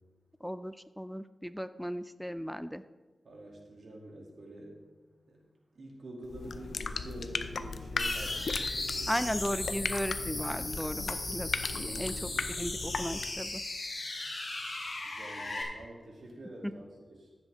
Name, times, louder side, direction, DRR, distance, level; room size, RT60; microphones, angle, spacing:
voice 1, 0.4-2.8 9.1-13.6, equal, ahead, 13 dB, 0.4 m, -36 dB
voice 2, 3.2-4.8 5.3-5.4 5.7-9.1 11.6-12.4 15.0-17.3, right 1 dB, 75° right, -1 dB, 2.7 m, -47 dB
sound 1, 6.2-13.5, left 4 dB, 80° left, 0.5 m, -37 dB
sound 2, 8.0-15.6, left 2 dB, 55° left, 3.6 m, -37 dB
14.5 x 8.0 x 3.6 m, 1.3 s
cardioid pair, 60°, 0 cm